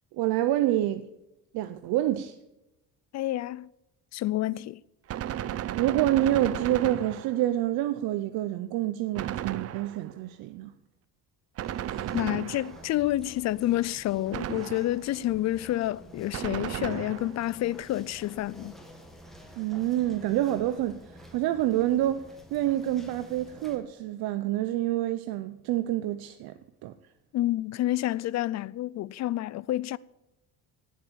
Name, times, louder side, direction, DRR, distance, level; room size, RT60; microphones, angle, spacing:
voice 1, 0.1-1.0 1.5-2.4 5.8-10.7 19.6-22.2 22.5-26.5 26.8-26.9, right 13 dB, 80° right, 0.8 m, -27 dB
voice 2, 3.1-3.7 4.1-4.8 12.1-18.7 27.3-30.0, left 15 dB, 50° left, 0.4 m, -29 dB
Gunshot gunfire, 5.1-7.6 9.2-10.2 11.6-13.0 14.3-15.1 16.3-17.5, right 11 dB, 40° right, 0.6 m, -34 dB
sound 1, 11.6-23.8, equal, ahead, 2.3 m, -50 dB
18.0 x 8.4 x 7.0 m
cardioid pair, 140°, 36 cm